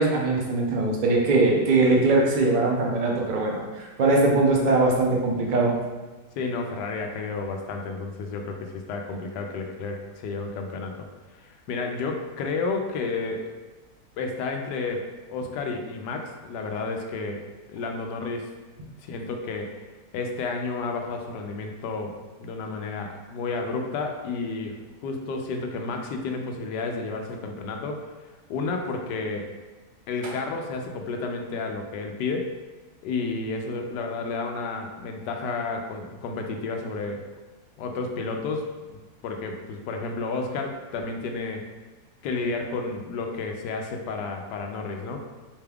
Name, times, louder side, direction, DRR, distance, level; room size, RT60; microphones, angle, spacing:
voice 1, 0.0-5.7, right 2 dB, 85° right, -1 dB, 0.4 m, -21 dB
voice 2, 6.4-11.1 11.4-13.5 14.2-17.4 17.7-18.5 19.0-19.8 20.1-28.1 28.5-29.5 30.1-32.5 33.0-37.2 37.8-41.6 42.2-45.2, left 3 dB, 85° left, 3 dB, 1.2 m, -31 dB
4.9 x 2.3 x 3.4 m, 1.3 s
omnidirectional pair, 1.7 m